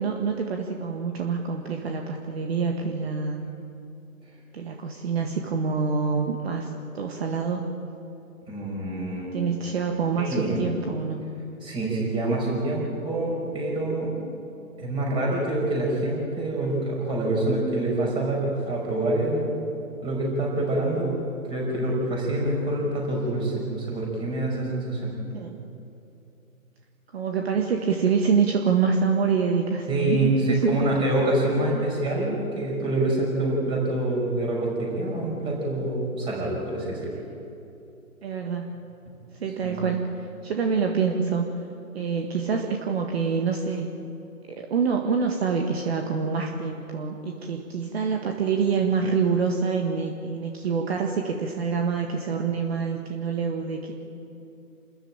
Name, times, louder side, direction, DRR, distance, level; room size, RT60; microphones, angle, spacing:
voice 1, 0.0-3.5 4.5-7.7 9.3-11.2 25.3-25.6 27.1-30.9 31.6-31.8 38.2-38.8 39.3-41.5 41.9-43.9 44.5-53.9, right 5 dB, 45° right, 3 dB, 1.9 m, -26 dB
voice 2, 8.5-9.3 10.2-10.6 11.6-14.1 14.8-19.7 20.0-21.2 21.5-25.1 29.9-37.2 39.6-39.8, right 1 dB, 10° right, -2 dB, 5.5 m, -26 dB
28.0 x 14.0 x 8.9 m, 2.7 s
hypercardioid pair, 150°, 44 cm